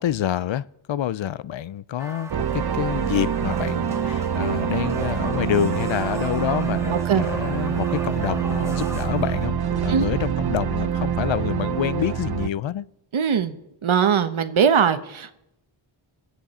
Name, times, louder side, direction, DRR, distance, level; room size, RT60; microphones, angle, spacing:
voice 1, 0.0-2.5 2.7-12.8, left 11 dB, 70° left, 0.6 m, -27 dB
sound 1, 2.0-9.5, right 1 dB, 5° right, 2.1 m, -38 dB
sound 2, 2.3-12.5, right 8 dB, 50° right, 0.7 m, -25 dB
voice 2, 6.9-7.3 9.9-10.2 13.1-13.6 13.8-15.4, right 7 dB, 75° right, 1.1 m, -21 dB
23.5 x 8.5 x 4.3 m
wide cardioid pair, 65°, 48 cm